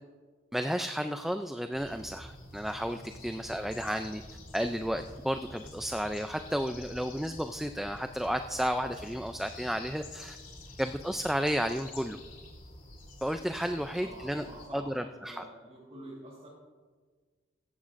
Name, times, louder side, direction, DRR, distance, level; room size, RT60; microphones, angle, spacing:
voice 1, 0.5-4.2 4.5-10.4 10.8-12.2 13.2-14.4 14.7-15.4, equal, ahead, 7 dB, 0.3 m, -32 dB
sound 1, 1.7-14.7, left 2 dB, 50° left, 3.2 m, -48 dB
voice 2, 13.7-16.5, right 1 dB, 35° right, -7 dB, 3.5 m, -48 dB
17.0 x 15.0 x 2.5 m, 1.5 s
head